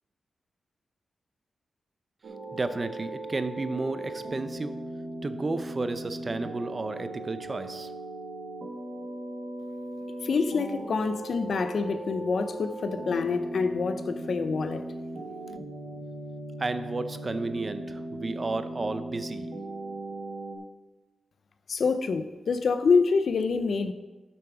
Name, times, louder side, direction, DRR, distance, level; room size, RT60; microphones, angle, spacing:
sound 1, 2.2-20.6, right 1 dB, 75° right, 1.6 m, -38 dB
voice 1, 2.5-4.8 5.2-7.9 16.6-19.5, right 3 dB, 30° right, 10 dB, 0.6 m, -32 dB
voice 2, 10.2-14.8 21.7-23.9, left 4 dB, 60° left, 10 dB, 0.6 m, -26 dB
8.5 x 7.0 x 6.0 m, 1.2 s
wide cardioid pair, 125°, 0 cm